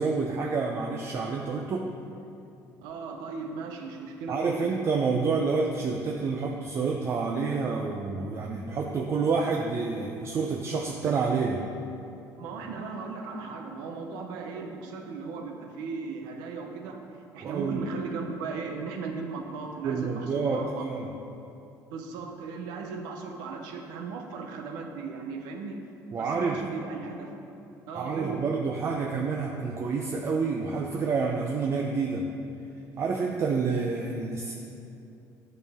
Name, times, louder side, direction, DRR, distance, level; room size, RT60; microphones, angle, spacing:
voice 1, 0.0-1.9 4.3-11.7 17.4-17.9 19.8-21.1 26.1-26.6 27.9-32.3 33.0-34.5, right 4 dB, 40° right, 1 dB, 0.5 m, -28 dB
voice 2, 2.8-4.6 12.4-20.9 21.9-25.8 26.2-27.3 27.9-28.6, right 4 dB, 85° right, 4 dB, 0.8 m, -37 dB
9.4 x 5.5 x 3.5 m, 2.7 s
cardioid pair, 120°, 7 cm